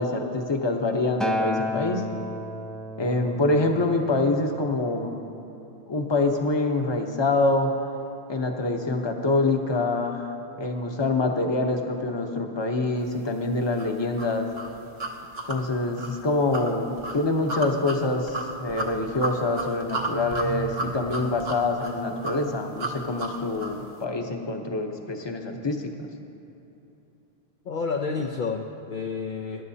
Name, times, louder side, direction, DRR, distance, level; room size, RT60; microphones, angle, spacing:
voice 1, 0.0-2.0 3.0-5.3 5.9-7.7 8.3-14.5 15.5-26.1, left 2 dB, 25° left, 3 dB, 0.9 m, -25 dB
Acoustic guitar, 1.2-5.5 6.3-6.4, left 1 dB, ahead, 0.4 m, -32 dB
sound 1, 13.8-23.8, right 2 dB, 70° right, 1.2 m, -33 dB
voice 2, 27.7-29.6, left 4 dB, 55° left, 1 dB, 0.7 m, -30 dB
22.5 x 11.0 x 2.8 m, 3.0 s
omnidirectional pair, 1.1 m